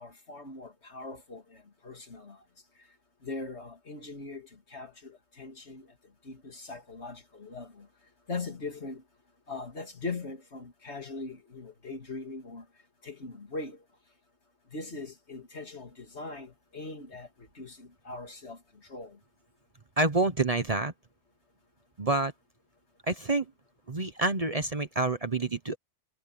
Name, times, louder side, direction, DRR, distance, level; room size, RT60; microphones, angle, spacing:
voice 1, 0.0-1.4 1.8-2.4 3.2-5.9 6.2-7.9 8.3-9.0 9.5-12.6 13.0-13.8 14.7-17.3 17.5-18.6 18.9-19.2, left 3 dB, 65° left, 3.0 m, -40 dB
voice 2, 20.0-20.9 22.0-22.3 23.1-23.5 23.9-25.8, right 2 dB, 35° right, 1.0 m, -27 dB
omnidirectional pair, 1.2 m